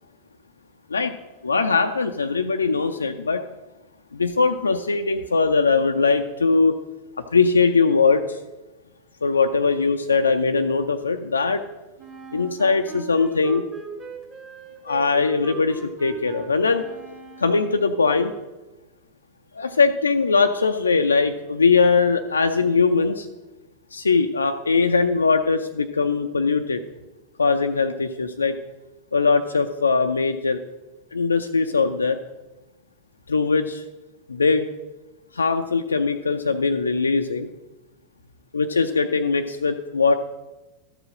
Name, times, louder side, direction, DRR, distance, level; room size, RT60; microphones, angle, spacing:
voice 1, 1.4-3.4 4.1-6.8 7.2-8.4 9.2-11.6 12.3-13.6 14.8-16.9 17.4-18.3 19.5-23.3 23.9-26.8 27.4-28.6 29.1-30.6 31.1-32.2 33.3-33.8 34.3-34.7 35.3-37.5 38.5-40.1, left 4 dB, 75° left, 6 dB, 0.4 m, -21 dB
Wind instrument woodwind instrument, 12.0-17.9, right 4 dB, 20° right, 1.8 m, -40 dB
12.5 x 5.0 x 6.2 m, 1.1 s
figure-of-eight pair, 90°, 0 cm